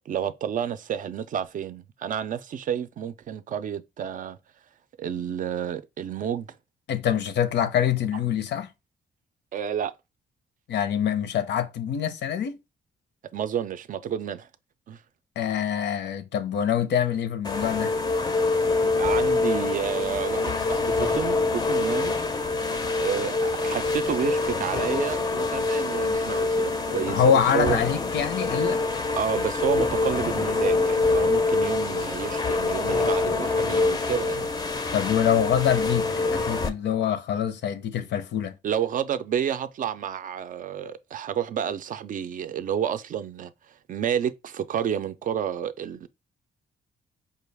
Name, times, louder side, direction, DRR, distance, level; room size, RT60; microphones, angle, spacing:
voice 1, 0.1-4.4 5.0-6.5 9.5-9.9 13.3-14.5 14.9-15.0 18.8-22.1 23.0-27.8 29.2-34.5 38.6-43.5 43.9-46.1, right 8 dB, 50° right, 0.4 m, -30 dB
voice 2, 6.9-8.7 10.7-12.6 15.4-17.9 27.1-28.9 34.9-38.6, left 9 dB, 90° left, 0.6 m, -25 dB
sound 1, 17.4-36.7, left 3 dB, 25° left, 0.4 m, -25 dB
5.2 x 2.3 x 3.3 m
wide cardioid pair, 160°, 18 cm